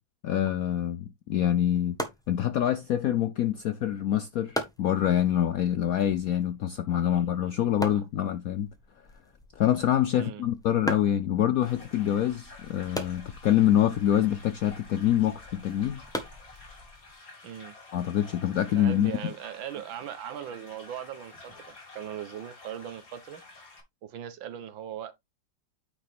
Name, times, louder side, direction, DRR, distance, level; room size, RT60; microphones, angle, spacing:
voice 1, 0.2-2.0 2.3-8.7 9.6-16.0 17.9-19.1, left 11 dB, 75° left, 0.8 m, -26 dB
sound 1, 1.3-17.1, equal, ahead, 1.1 m, -41 dB
voice 2, 7.0-7.5 7.9-8.0 10.1-10.4 17.4-17.7 18.8-23.4 24.0-25.1, right 10 dB, 80° right, 1.8 m, -39 dB
sound 2, 11.6-23.8, left 3 dB, 45° left, 3.1 m, -50 dB
9.4 x 4.7 x 3.5 m
omnidirectional pair, 2.1 m